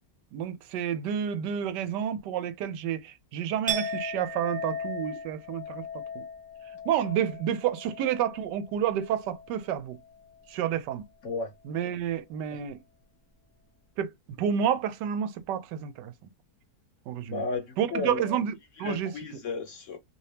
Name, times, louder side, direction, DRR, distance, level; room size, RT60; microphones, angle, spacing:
voice 1, 0.3-5.8 6.1-6.2 6.9-10.0 10.5-11.0 11.7-12.8 14.0-14.1 14.4-16.1 17.1-17.4 17.8-19.1, right 9 dB, 85° right, 1.2 m, -30 dB
Chink clink, 3.7-9.6 9.9-10.3, left 1 dB, 10° right, 0.5 m, -37 dB
voice 2, 17.3-18.4 18.8-20.0, left 3 dB, 60° left, 0.9 m, -33 dB
3.0 x 2.8 x 3.2 m
omnidirectional pair, 1.8 m